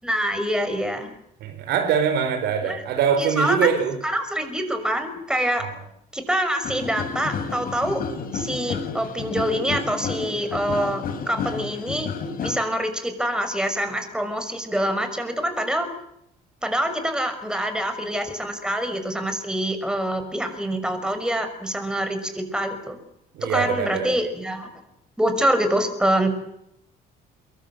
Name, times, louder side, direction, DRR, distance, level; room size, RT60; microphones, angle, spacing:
voice 1, 0.0-1.1 2.6-2.8 3.2-5.7 6.1-8.0 8.3-12.1 12.4-15.9 16.6-23.0 23.5-24.7 25.2-26.3, equal, 5° right, 5.9 m, -25 dB
voice 2, 1.4-4.0 23.3-24.1, right 7 dB, 80° right, 4.4 m, -23 dB
sound 1, 6.6-12.6, left 5 dB, 60° left, 6.1 m, -31 dB
23.5 x 23.0 x 7.8 m
cardioid pair, 110°, 17 cm